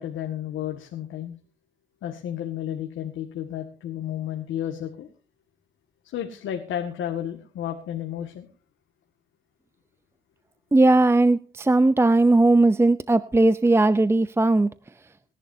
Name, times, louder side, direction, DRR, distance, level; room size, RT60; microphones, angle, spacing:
voice 1, 0.0-1.4 2.0-5.1 6.1-8.5, left 10 dB, 80° left, 3 dB, 1.9 m, -32 dB
voice 2, 10.7-14.7, right 2 dB, 10° right, 14 dB, 0.6 m, -18 dB
25.5 x 11.0 x 2.7 m, 0.37 s
cardioid pair, 90°, 20 cm